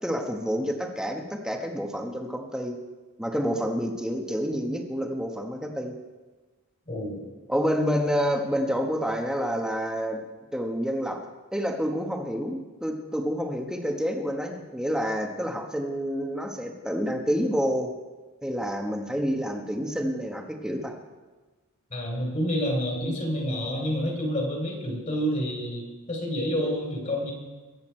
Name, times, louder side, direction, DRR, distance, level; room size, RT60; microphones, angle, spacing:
voice 1, 0.0-2.8 3.2-5.9 7.5-10.2 10.5-11.2 11.5-17.9 18.4-20.9, equal, 5° right, 3 dB, 1.2 m, -28 dB
voice 2, 6.9-7.2 21.9-27.3, equal, 35° left, 1 dB, 3.0 m, -28 dB
22.0 x 8.3 x 4.5 m, 1.2 s
head